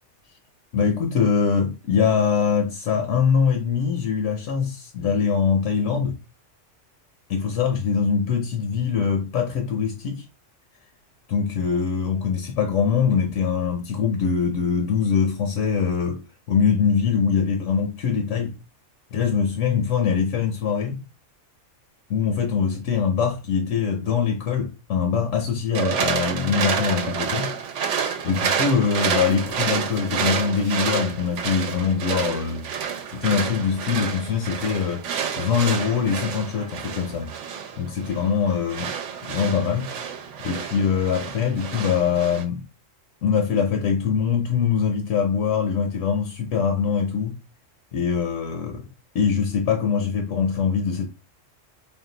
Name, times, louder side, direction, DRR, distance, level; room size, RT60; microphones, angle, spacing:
voice 1, 0.7-6.2 7.3-10.2 11.3-18.5 19.1-21.0 22.1-27.5 28.2-32.7 33.1-35.1 35.4-37.3 37.8-38.9 39.3-39.9 40.4-42.6 43.2-47.4 47.9-48.9 49.1-51.1, left 6 dB, 75° left, 1.0 m, -23 dB
sound 1, 25.7-42.4, right 7 dB, 75° right, 1.0 m, -29 dB
3.7 x 2.3 x 3.8 m
omnidirectional pair, 1.3 m